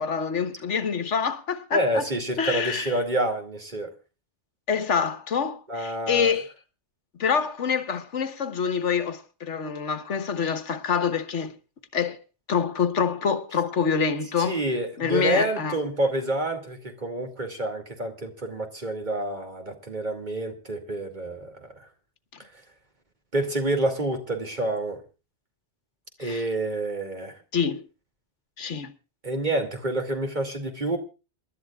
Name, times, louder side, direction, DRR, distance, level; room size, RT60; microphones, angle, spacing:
voice 1, 0.0-2.0 2.4-2.9 4.7-6.5 7.2-11.5 11.9-12.2 12.5-14.6 15.0-15.8 26.2-26.4 27.5-27.8 28.6-28.9, left 6 dB, 85° left, 1.5 m, -26 dB
voice 2, 1.7-3.9 5.7-6.3 14.4-21.9 23.3-25.0 26.2-27.4 29.2-31.0, right 1 dB, 40° right, 2.6 m, -28 dB
27.5 x 12.5 x 2.4 m
omnidirectional pair, 1.2 m